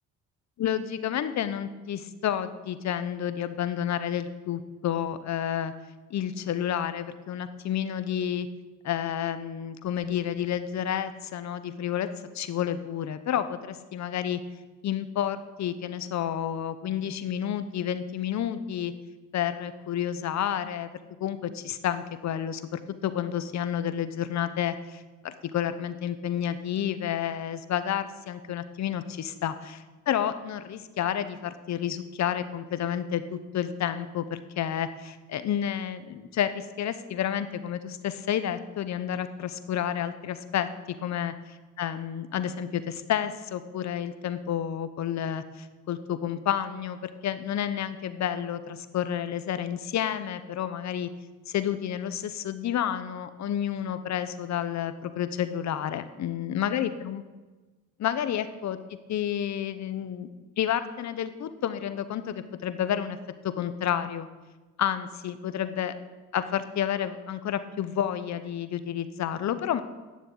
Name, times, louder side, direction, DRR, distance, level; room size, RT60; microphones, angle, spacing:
voice 1, 0.6-5.7 6.1-8.5 8.8-12.1 12.3-14.4 14.8-18.9 19.3-20.9 21.2-41.3 41.8-51.1 51.5-57.2 58.0-58.8 59.1-60.3 60.6-63.2 63.4-64.3 64.8-65.9 66.3-69.8, left 10 dB, 65° left, 12 dB, 1.0 m, -30 dB
9.8 x 7.3 x 8.6 m, 1.2 s
cardioid pair, 90°, 30 cm